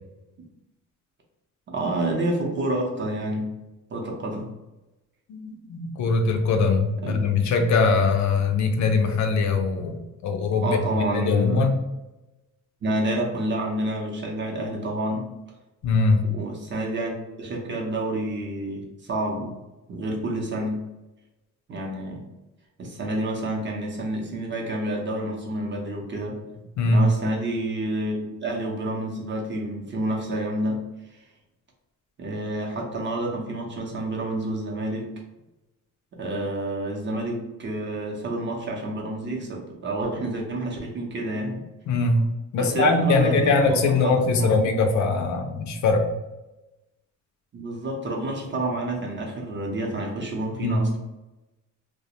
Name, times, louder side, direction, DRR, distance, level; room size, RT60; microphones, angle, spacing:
voice 1, 1.7-3.5 3.9-4.5 7.0-7.3 10.6-11.6 12.8-15.3 16.3-19.6 19.9-20.8 21.7-22.2 22.8-26.4 26.9-30.8 32.2-35.1 36.1-41.6 42.6-44.7 47.5-51.0, right 1 dB, 35° right, 0 dB, 0.6 m, -29 dB
voice 2, 5.3-11.8 15.8-16.2 26.8-27.1 41.9-42.2 42.5-46.1 50.6-50.8, left 3 dB, 65° left, 5 dB, 0.4 m, -22 dB
2.4 x 2.0 x 2.8 m, 1.0 s
cardioid pair, 130°, 31 cm